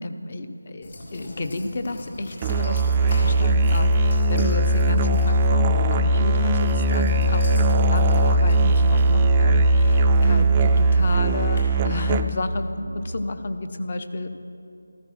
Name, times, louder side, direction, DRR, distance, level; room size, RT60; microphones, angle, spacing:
voice 1, 0.0-14.3, left 2 dB, 40° left, 9 dB, 0.9 m, -31 dB
sound 1, 0.8-11.6, left 1 dB, 55° left, 4.4 m, -38 dB
Musical instrument, 2.4-12.6, right 1 dB, 20° right, 0.4 m, -19 dB
14.0 x 14.0 x 6.3 m, 2.6 s
figure-of-eight pair, 165°, 0 cm